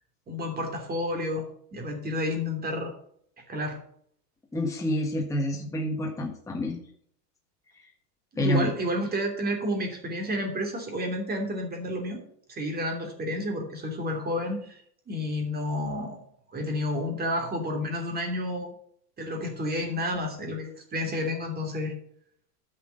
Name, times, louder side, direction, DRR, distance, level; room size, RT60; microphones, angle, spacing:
voice 1, 0.3-1.4 1.7-2.9 3.5-3.8 8.3-12.2 12.5-14.8 15.1-16.2 16.5-18.7 19.2-21.9, left 1 dB, 20° right, 3 dB, 3.0 m, -30 dB
voice 2, 4.5-6.8 8.4-8.7, left 1 dB, 5° left, 0 dB, 1.6 m, -28 dB
10.5 x 6.1 x 6.7 m, 0.63 s
hypercardioid pair, 120°, 48 cm